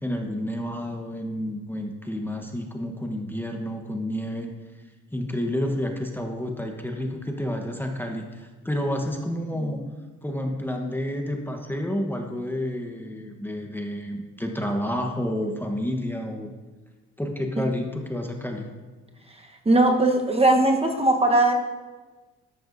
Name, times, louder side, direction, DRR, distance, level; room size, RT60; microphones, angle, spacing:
voice 1, 0.0-4.5 5.1-9.8 10.2-16.5 17.2-18.7, left 1 dB, 5° left, 2 dB, 1.1 m, -30 dB
voice 2, 19.6-21.5, right 2 dB, 20° right, 3 dB, 1.1 m, -19 dB
13.0 x 11.5 x 2.7 m, 1.3 s
cardioid pair, 90°, 30 cm